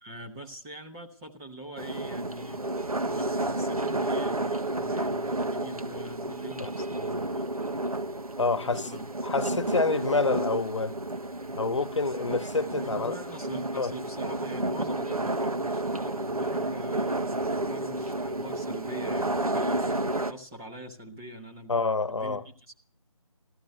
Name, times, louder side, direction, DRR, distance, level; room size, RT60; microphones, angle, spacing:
voice 1, 0.0-2.7 3.0-7.5 8.6-9.1 12.7-21.8 22.1-22.7, right 1 dB, 5° right, 0.7 m, -43 dB
sound 1, 1.8-20.3, right 2 dB, 85° right, 1.7 m, -31 dB
voice 2, 8.4-8.9 9.2-10.9 11.6-13.2 13.7-13.9 21.7-22.4, left 3 dB, 55° left, 1.1 m, -27 dB
14.5 x 14.0 x 6.5 m
figure-of-eight pair, 165°, 18 cm